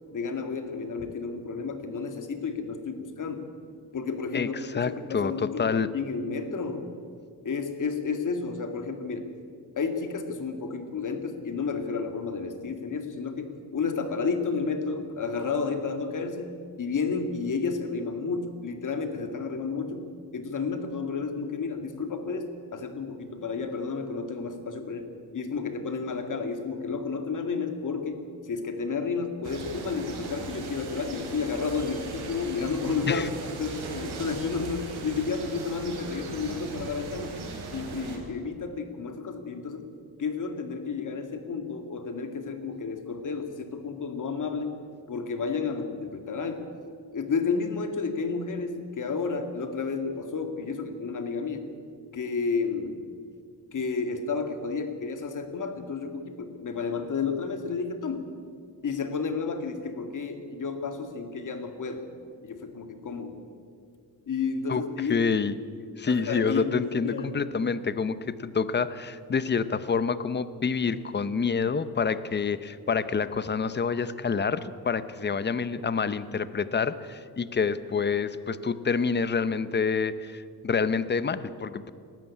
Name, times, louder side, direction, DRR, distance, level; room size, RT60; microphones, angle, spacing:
voice 1, 0.1-3.5 3.9-5.7 5.9-6.9 7.4-9.3 9.8-20.1 20.3-33.3 33.6-37.4 37.7-39.9 40.2-44.7 45.1-46.7 47.1-51.7 52.1-53.0 53.7-58.3 58.8-62.1 62.4-63.4 64.3-65.2 66.1-67.3, left 5 dB, 50° left, 7 dB, 2.2 m, -31 dB
voice 2, 4.3-5.9 33.1-33.3 64.7-65.5 66.0-81.9, left 5 dB, 25° left, 14 dB, 0.8 m, -27 dB
sound 1, 29.4-38.2, right 3 dB, 75° right, 4.1 m, -38 dB
19.0 x 14.0 x 9.9 m, 2.3 s
cardioid pair, 130°, 40 cm